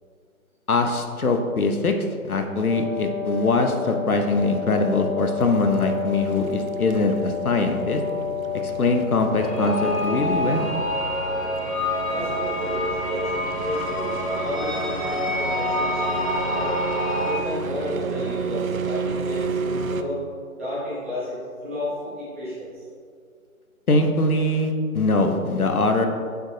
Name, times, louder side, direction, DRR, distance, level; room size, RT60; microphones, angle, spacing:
voice 1, 0.7-1.9 2.2-8.0 8.6-10.7 23.9-26.1, left 2 dB, 75° left, 5 dB, 0.8 m, -22 dB
Wind instrument woodwind instrument, 2.4-10.4, left 7 dB, 35° right, 1.1 m, -31 dB
sound 1, 5.4-20.0, right 5 dB, 70° right, 0.5 m, -33 dB
sound 2, 9.3-17.3, left 1 dB, 25° left, 0.7 m, -26 dB
voice 2, 12.0-16.7 17.2-20.2 20.5-22.8, equal, 10° right, -12 dB, 0.8 m, -32 dB
7.1 x 6.5 x 2.7 m, 2.2 s
figure-of-eight pair, 145°, 44 cm